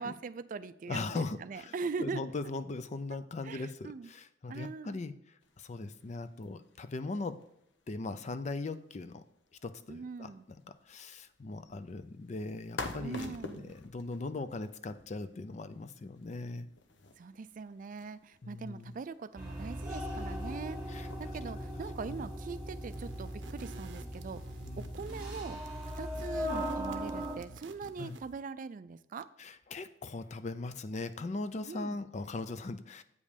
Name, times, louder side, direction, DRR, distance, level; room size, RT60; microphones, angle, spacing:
voice 1, 0.0-2.2 3.4-4.1 4.5-5.0 9.9-10.4 13.0-13.8 17.2-25.6 26.0-29.3 31.7-32.0, right 4 dB, 45° right, 14 dB, 0.4 m, -41 dB
voice 2, 0.9-5.1 5.6-7.4 7.9-9.2 9.6-10.6 10.9-16.7 18.4-18.9 20.9-21.1 22.2-22.3 24.6-24.9 28.0-28.2 29.4-33.0, left 3 dB, 40° left, 12 dB, 0.5 m, -39 dB
sound 1, 5.4-21.7, left 3 dB, 85° left, 0.9 m, -51 dB
sound 2, 19.3-27.4, equal, 5° right, 1.8 m, -39 dB
sound 3, 22.9-28.4, right 3 dB, 75° right, 0.7 m, -50 dB
8.2 x 5.3 x 5.1 m, 0.76 s
head